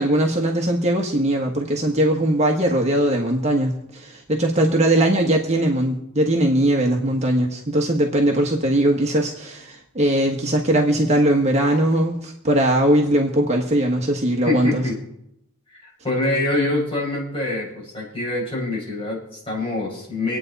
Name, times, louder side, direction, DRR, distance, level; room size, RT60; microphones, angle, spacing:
voice 1, 0.0-14.8, right 1 dB, 30° right, 1 dB, 1.3 m, -20 dB
voice 2, 14.5-15.0 15.7-20.4, left 2 dB, 25° left, -3 dB, 5.7 m, -25 dB
25.0 x 9.2 x 4.1 m, 0.78 s
head